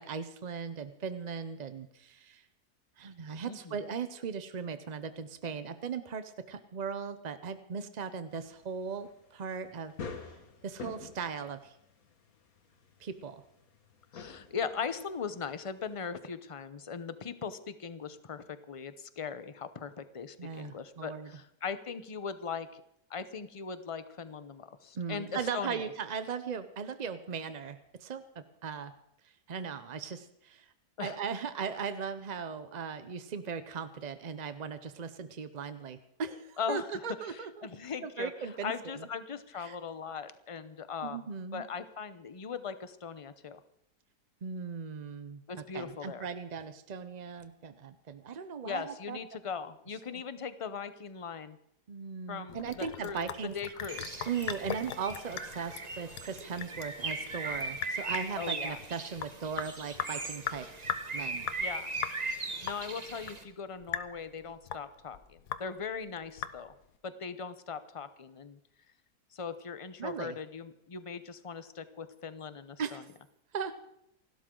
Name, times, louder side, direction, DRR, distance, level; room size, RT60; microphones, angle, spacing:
voice 1, 0.0-2.4 3.0-9.9 10.6-11.8 13.0-13.4 20.4-21.3 24.9-28.9 29.5-30.7 31.0-37.7 38.0-39.1 39.6-39.8 41.0-41.6 44.4-45.4 45.7-49.2 50.1-50.2 51.9-53.5 53.8-54.0 54.3-60.7 61.1-61.5 70.0-70.4 72.8-73.1 73.5-73.8, right 6 dB, 50° right, 11 dB, 0.5 m, -38 dB
voice 2, 3.5-3.8 14.1-22.8 23.1-25.9 31.0-31.2 36.6-37.0 37.3-38.3 38.6-43.6 45.5-46.3 48.6-51.6 52.3-54.2 58.4-58.8 61.6-61.9 62.6-66.7 67.0-68.6 69.3-73.0, left 6 dB, 35° left, 12 dB, 0.5 m, -39 dB
sound 1, 8.3-16.1, left 4 dB, 65° left, 1.9 m, -48 dB
Sink (filling or washing) / Drip, 52.5-67.0, left 10 dB, 90° left, 1.4 m, -41 dB
Bird, 53.9-63.4, right 3 dB, 30° right, 1.2 m, -39 dB
28.5 x 12.5 x 3.8 m, 0.79 s
omnidirectional pair, 1.7 m